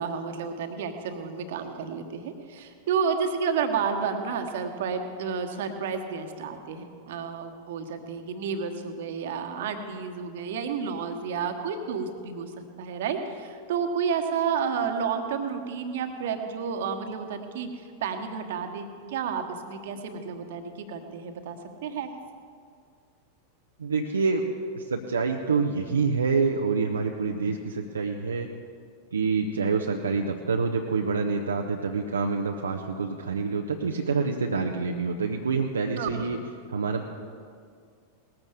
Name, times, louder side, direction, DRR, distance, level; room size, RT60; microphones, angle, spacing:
voice 1, 0.0-22.1 36.0-36.3, right 6 dB, 55° right, 6 dB, 1.3 m, -31 dB
voice 2, 23.8-24.4 24.8-28.5 29.1-36.4 36.7-37.1, right 4 dB, 70° right, 2 dB, 0.7 m, -27 dB
19.0 x 14.5 x 3.6 m, 2.2 s
figure-of-eight pair, 90°, 0 cm